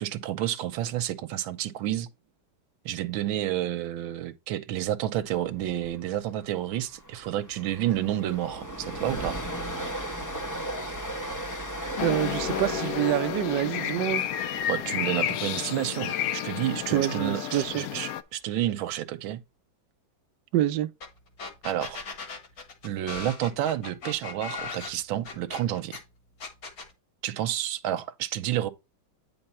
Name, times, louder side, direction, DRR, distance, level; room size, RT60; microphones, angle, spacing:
voice 1, 0.0-2.1 2.8-9.4 14.7-19.4 21.6-22.0 22.8-26.0 27.2-28.7, right 12 dB, 90° right, 1.5 m, -30 dB
Train, 5.6-5.9 6.1-6.3 6.7-16.8, right 1 dB, 25° left, 0.4 m, -37 dB
sound 1, 12.0-18.2, left 10 dB, 80° left, 0.8 m, -31 dB
voice 2, 12.0-14.2 16.9-17.8 20.5-20.9, right 13 dB, 70° right, 1.1 m, -26 dB
sound 2, 21.0-21.1 21.4-26.0 26.4-26.9, left 4 dB, 50° left, 1.8 m, -38 dB
8.9 x 3.7 x 4.2 m
omnidirectional pair, 2.2 m